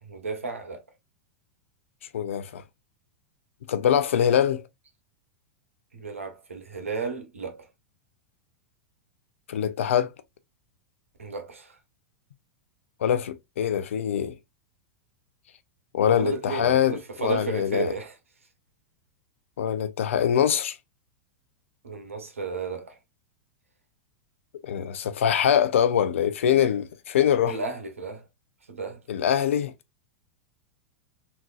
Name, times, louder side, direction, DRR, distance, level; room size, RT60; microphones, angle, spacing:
voice 1, 0.0-0.8 5.9-7.7 11.2-11.8 16.0-18.1 21.8-23.0 27.4-28.3 28.7-29.0, right 4 dB, 90° right, 1.1 m, -33 dB
voice 2, 2.1-2.6 3.7-4.6 9.5-10.1 13.0-14.3 15.9-17.9 19.6-20.8 24.6-27.5 29.1-29.7, left 9 dB, 75° left, 0.5 m, -23 dB
3.7 x 2.9 x 2.4 m
hypercardioid pair, 95°, 7 cm